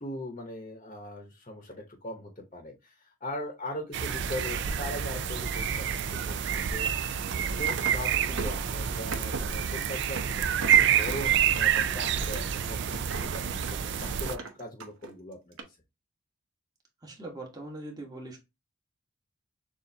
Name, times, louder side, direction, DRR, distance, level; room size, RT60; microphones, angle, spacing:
voice 1, 0.0-6.9 7.6-15.8, left 1 dB, 35° left, 3 dB, 0.8 m, -40 dB
sound 1, 3.9-14.4, right 8 dB, 55° right, 0.4 m, -28 dB
sound 2, 7.1-8.7 9.1-9.5 9.9-15.1 15.5-15.6, right 4 dB, 85° right, 0.8 m, -39 dB
voice 2, 17.0-18.4, right 2 dB, 20° right, 0 dB, 1.2 m, -41 dB
6.6 x 2.5 x 2.7 m, 0.24 s
head